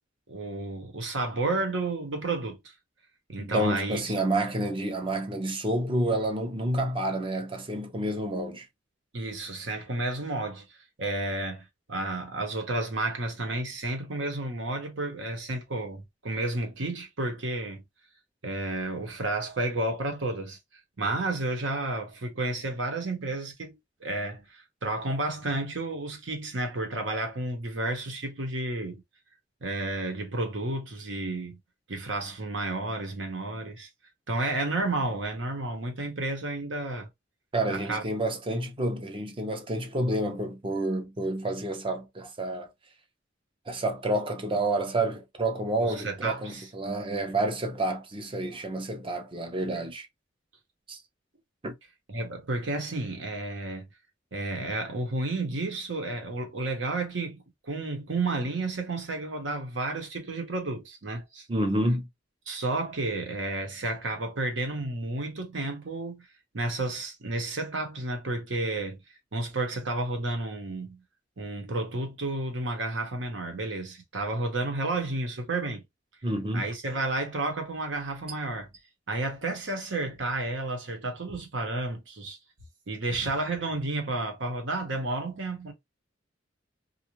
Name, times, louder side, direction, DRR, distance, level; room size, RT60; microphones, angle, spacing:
voice 1, 0.3-2.6 3.3-4.0 9.1-10.7 11.0-17.8 18.4-20.6 21.0-23.7 24.0-29.0 29.6-31.6 31.9-33.9 34.3-37.1 37.7-38.0 45.8-46.6 52.1-53.9 54.3-61.4 62.5-66.3 66.5-69.0 69.3-71.0 71.4-75.8 76.5-78.7 79.1-82.4 82.9-85.7, right 2 dB, 75° right, 0.9 m, -31 dB
voice 2, 3.4-8.7 37.5-42.7 43.7-50.1 50.9-51.0 51.6-51.7 61.5-62.1 76.2-76.7, right 1 dB, 30° right, 0.6 m, -29 dB
2.6 x 2.3 x 2.9 m
head